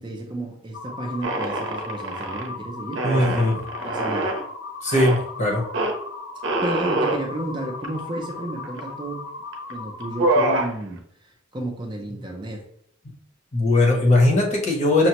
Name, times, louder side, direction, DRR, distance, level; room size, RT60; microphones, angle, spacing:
voice 1, 0.0-3.5 3.8-4.3 6.6-9.3 9.7-12.6, right 1 dB, 20° right, 0 dB, 0.5 m, -32 dB
sound 1, 0.7-10.7, left 4 dB, 75° left, 1.0 m, -37 dB
sound 2, 1.2-2.5 2.9-4.4 4.9-5.2 5.7-5.9 6.4-7.2 7.8-7.9 8.2-8.9 9.5-9.7 10.0-10.7, right 2 dB, 65° right, 0.7 m, -24 dB
voice 2, 3.0-3.6 4.8-5.6 13.5-15.1, left 2 dB, 35° left, 0 dB, 0.8 m, -19 dB
5.8 x 2.1 x 2.9 m, 0.67 s
head